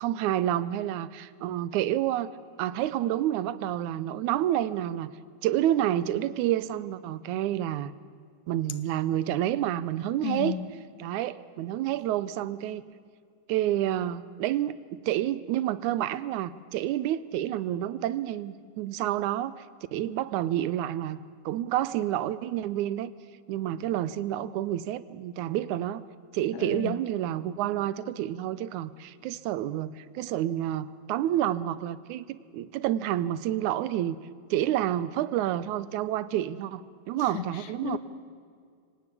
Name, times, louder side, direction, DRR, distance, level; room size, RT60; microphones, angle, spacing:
voice 1, 0.0-2.3 2.6-5.1 5.4-7.9 8.5-10.6 11.0-12.8 13.5-19.6 19.9-23.1 23.5-26.0 26.3-34.2 34.5-36.8 37.1-38.0, right 12 dB, 90° right, 17 dB, 2.2 m, -29 dB
voice 2, 10.2-10.7 26.5-27.0 37.3-37.5 37.8-38.0, left 10 dB, 70° left, 12 dB, 2.2 m, -32 dB
25.5 x 17.5 x 8.3 m, 2.2 s
omnidirectional pair, 3.4 m